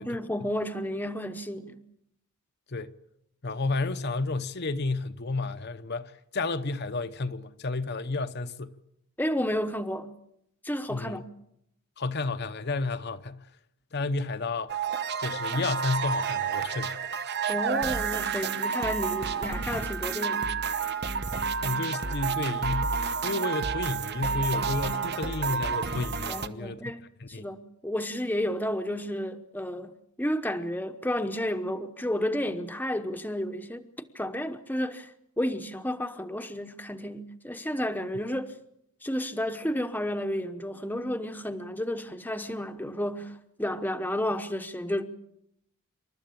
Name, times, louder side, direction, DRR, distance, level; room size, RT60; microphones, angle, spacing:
voice 1, 0.0-1.8 9.2-10.1 10.6-11.2 17.5-20.5 26.3-35.1 35.4-38.5 39.0-45.0, equal, 10° left, 0.9 m, -32 dB
voice 2, 3.4-8.8 10.9-11.2 12.0-13.5 13.9-14.8 15.2-17.0 21.6-22.9 23.2-26.9 27.2-27.4, left 3 dB, 45° left, 0.8 m, -31 dB
sound 1, 14.7-26.5, right 5 dB, 50° right, 1.0 m, -30 dB
28.0 x 13.0 x 8.6 m
head